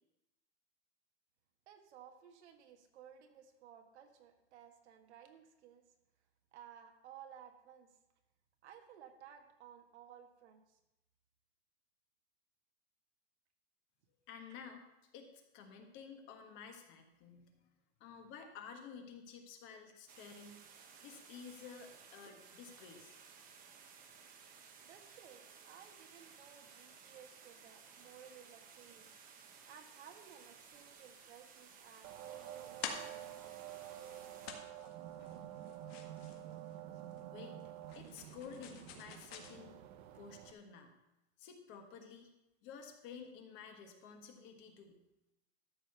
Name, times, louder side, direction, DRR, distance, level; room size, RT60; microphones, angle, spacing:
voice 1, 1.7-5.8 6.5-7.9 8.6-10.8 24.8-29.1 29.7-33.6, right 9 dB, 80° right, 5 dB, 1.7 m, -57 dB
voice 2, 14.3-14.9 15.1-15.3 15.5-17.5 18.0-20.6 21.0-23.2 37.3-37.6 37.9-39.8 40.1-40.9 41.4-42.3 42.6-45.0, left 6 dB, 35° left, 4 dB, 1.5 m, -52 dB
sound 1, 20.1-34.5, right 6 dB, 25° right, 1.0 m, -58 dB
sound 2, 32.0-40.5, right 12 dB, 45° right, 0.9 m, -49 dB
sound 3, 32.1-39.5, left 6 dB, 60° left, 1.8 m, -50 dB
13.0 x 5.2 x 6.7 m, 0.94 s
supercardioid pair, 160°, 34 cm